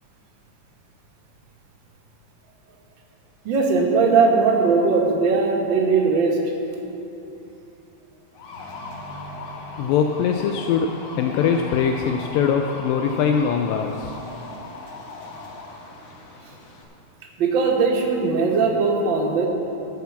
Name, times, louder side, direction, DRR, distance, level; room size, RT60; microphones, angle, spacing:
voice 1, 3.4-6.4 17.4-19.5, right 4 dB, 65° right, -1 dB, 1.1 m, -19 dB
sound 1, 8.3-16.8, left 3 dB, 60° left, 1.9 m, -38 dB
voice 2, 9.8-14.2, left 7 dB, 80° left, 4 dB, 2.2 m, -22 dB
13.0 x 5.8 x 7.2 m, 2.9 s
omnidirectional pair, 4.1 m